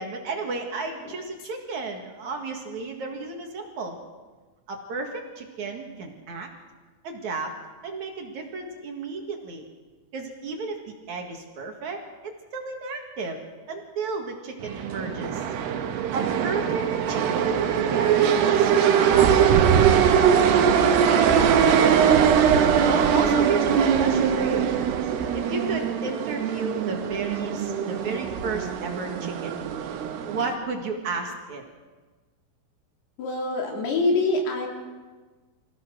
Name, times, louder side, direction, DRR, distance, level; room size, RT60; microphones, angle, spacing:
voice 1, 0.0-4.0 4.7-6.5 7.0-7.5 7.8-9.6 10.1-12.0 12.5-13.4 13.7-15.5 16.1-16.8 17.1-22.1 22.7-24.7 25.3-29.5 30.3-31.6, right 4 dB, 55° right, 3 dB, 2.8 m, -33 dB
sound 1, 14.6-30.5, right 8 dB, 90° right, 3.4 m, -21 dB
voice 2, 33.2-34.7, left 2 dB, 80° left, 0 dB, 5.2 m, -24 dB
25.5 x 16.0 x 6.3 m, 1.3 s
omnidirectional pair, 4.6 m